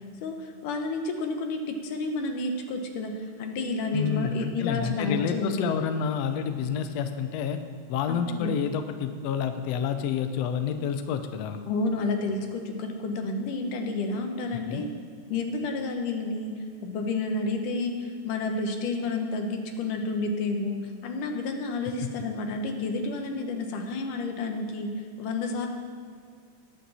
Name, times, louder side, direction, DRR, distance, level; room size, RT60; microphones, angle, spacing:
voice 1, 0.2-3.1 3.4-5.7 8.1-8.5 11.7-14.9 15.3-16.5 16.8-24.9 25.2-25.7, left 3 dB, 70° left, 4 dB, 2.5 m, -30 dB
voice 2, 3.9-7.6 7.9-11.6 14.7-14.8, left 7 dB, 90° left, 7 dB, 1.4 m, -29 dB
19.5 x 8.4 x 4.2 m, 2.2 s
omnidirectional pair, 4.0 m